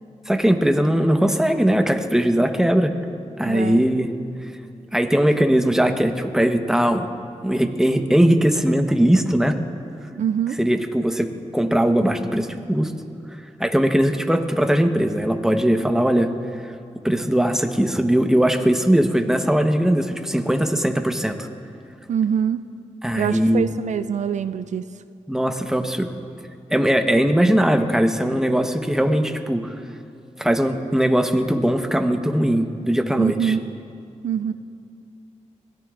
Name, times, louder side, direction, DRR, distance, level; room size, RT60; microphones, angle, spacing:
voice 1, 0.3-2.9 3.4-4.1 4.9-7.1 7.4-9.5 10.6-12.9 13.6-16.3 17.0-21.5 23.0-23.7 25.3-26.1 26.7-29.7 30.4-33.5, right 1 dB, 5° right, 5 dB, 1.1 m, -20 dB
voice 2, 3.4-3.8 10.1-10.6 22.1-22.7 23.2-24.9 33.2-33.6 34.2-34.5, right 8 dB, 75° right, 11 dB, 0.4 m, -24 dB
23.0 x 17.5 x 2.5 m, 2.5 s
cardioid pair, 65°, 12 cm